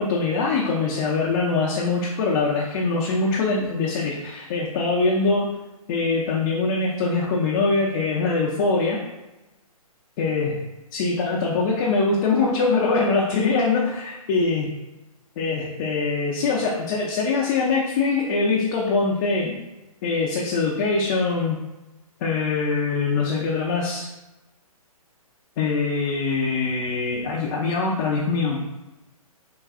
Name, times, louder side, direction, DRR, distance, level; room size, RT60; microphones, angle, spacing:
voice 1, 0.0-5.5 5.9-9.0 10.2-10.6 10.9-14.7 15.4-19.5 20.0-21.6 22.2-24.1 25.6-28.6, left 4 dB, 30° left, -4 dB, 0.5 m, -23 dB
4.7 x 2.3 x 2.4 m, 1.0 s
hypercardioid pair, 135°, 19 cm